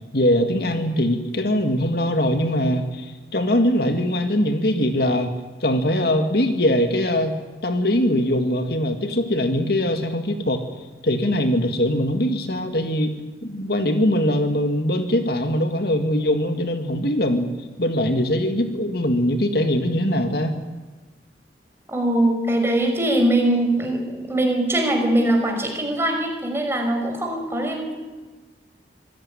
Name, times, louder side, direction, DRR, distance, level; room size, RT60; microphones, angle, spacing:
voice 1, 0.1-3.1 3.3-5.3 5.6-7.3 7.6-10.6 11.0-17.5 17.8-20.6, left 1 dB, 60° left, 6 dB, 2.1 m, -21 dB
voice 2, 21.9-28.0, right 1 dB, 15° right, 3 dB, 5.4 m, -22 dB
26.0 x 16.5 x 10.0 m, 1.3 s
head